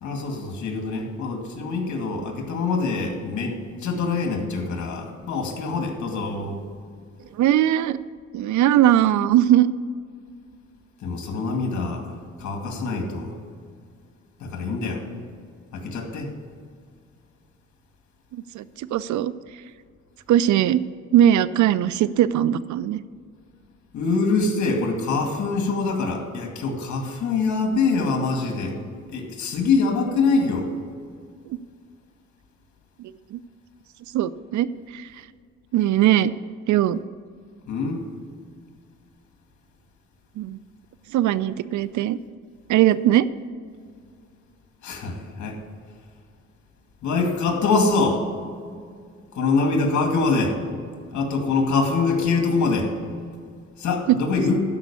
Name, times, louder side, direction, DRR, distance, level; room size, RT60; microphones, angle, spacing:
voice 1, 0.0-6.6 11.0-13.4 14.4-15.0 15.7-16.3 23.9-28.8 29.1-30.7 37.7-38.0 44.8-45.6 47.0-48.2 49.3-50.6 51.1-52.9 53.8-54.6, left 4 dB, 70° left, 3 dB, 2.2 m, -24 dB
voice 2, 7.4-8.0 8.3-9.7 18.3-18.6 18.9-19.3 20.3-20.8 21.1-23.0 33.3-33.4 34.1-35.0 35.7-36.3 36.7-37.0 40.4-40.6 41.1-42.2 42.7-43.3 54.1-54.2, right 12 dB, 75° right, 17 dB, 0.5 m, -19 dB
12.5 x 5.4 x 7.0 m, 2.1 s
cardioid pair, 90°, 30 cm